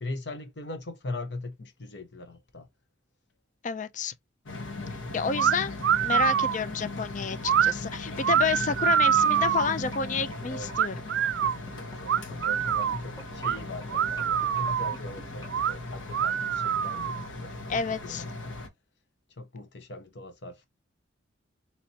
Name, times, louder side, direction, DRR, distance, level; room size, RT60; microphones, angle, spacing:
voice 1, 0.0-2.7 5.6-5.7 10.5-10.7 12.0-17.5 18.0-18.6 19.4-20.7, left 2 dB, 65° left, 0.9 m, -40 dB
voice 2, 3.6-4.1 5.1-5.8 6.0-10.9 17.7-18.2, left 5 dB, 40° left, 0.4 m, -29 dB
sound 1, 4.5-18.7, left 2 dB, 90° left, 1.2 m, -38 dB
sound 2, 5.4-5.6 5.8-6.6 7.4-7.7 8.2-9.8 10.7-11.6 12.1-13.0 13.4-13.6 13.9-15.0 15.5-15.7 16.1-17.2, right 9 dB, 75° right, 0.3 m, -25 dB
sound 3, 7.7-15.6, equal, 20° left, 0.8 m, -46 dB
4.1 x 3.0 x 2.8 m
head